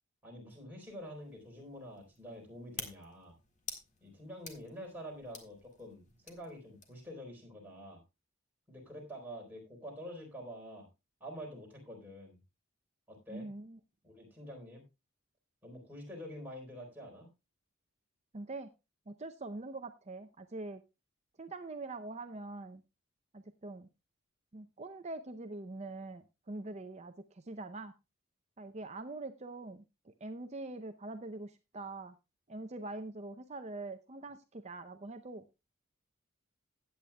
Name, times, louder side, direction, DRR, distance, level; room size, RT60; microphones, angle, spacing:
voice 1, 0.2-3.3 4.0-8.0 8.7-10.9 11.2-12.4 13.1-13.5 14.0-14.8 15.6-17.3, equal, 10° right, -1 dB, 3.8 m, -47 dB
sound 1, 0.8-7.1, left 5 dB, 35° left, 1.8 m, -50 dB
voice 2, 13.3-13.8 18.3-18.7 19.1-20.8 21.4-22.8 23.3-23.9 24.5-27.9 28.6-32.2 32.5-35.4, right 2 dB, 30° right, 8 dB, 0.6 m, -44 dB
16.0 x 8.7 x 2.2 m, 0.26 s
head